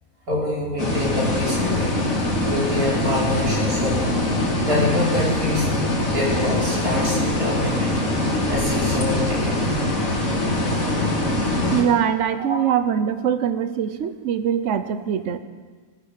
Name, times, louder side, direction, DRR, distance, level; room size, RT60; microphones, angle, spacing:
voice 1, 0.3-2.0 2.4-4.2 4.6-5.7 6.1-7.9 8.5-9.6 12.4-12.5, left 1 dB, 85° right, -5 dB, 5.0 m, -25 dB
sound 1, 0.8-11.8, left 1 dB, 65° left, 3.1 m, -23 dB
voice 2, 11.7-15.4, right 8 dB, 60° right, 11 dB, 1.1 m, -22 dB
18.0 x 9.5 x 6.7 m, 1.5 s
omnidirectional pair, 1.5 m